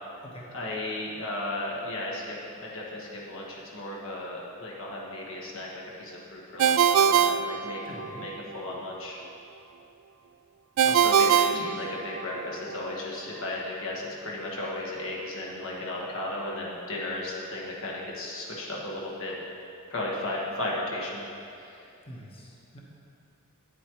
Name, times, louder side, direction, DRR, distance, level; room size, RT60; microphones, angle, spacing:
voice 1, 0.5-5.7 6.0-9.2 10.8-19.3 19.9-21.2 21.6-21.8, left 1 dB, 60° left, -3 dB, 1.4 m, -35 dB
Ringtone, 6.6-8.3 10.8-12.4, right 8 dB, 65° right, 0.3 m, -22 dB
voice 2, 7.8-8.3 11.5-11.9 22.1-22.8, equal, 25° left, -4 dB, 1.1 m, -44 dB
9.6 x 8.3 x 3.0 m, 2.7 s
head